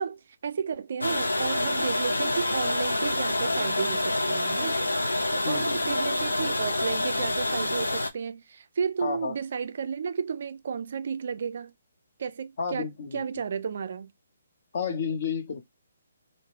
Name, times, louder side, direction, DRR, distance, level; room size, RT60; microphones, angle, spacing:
voice 1, 0.0-11.7 12.2-12.9 13.1-14.1, right 6 dB, 55° right, 0.3 m, -33 dB
sound 1, 1.0-8.1, left 2 dB, 85° left, 0.5 m, -27 dB
voice 2, 5.4-6.0 9.0-9.4 12.6-13.2 14.7-15.6, left 6 dB, 50° left, 0.7 m, -31 dB
2.2 x 2.0 x 3.2 m
figure-of-eight pair, 135°, 0 cm